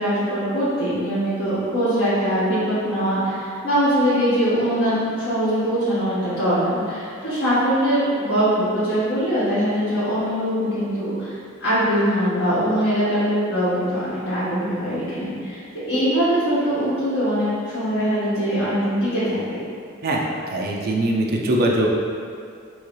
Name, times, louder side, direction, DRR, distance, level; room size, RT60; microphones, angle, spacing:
voice 1, 0.0-15.6 15.9-19.6, equal, 70° left, -13 dB, 1.5 m, -22 dB
voice 2, 20.5-21.9, right 1 dB, 45° right, -2 dB, 0.5 m, -21 dB
6.3 x 2.3 x 3.1 m, 2.2 s
head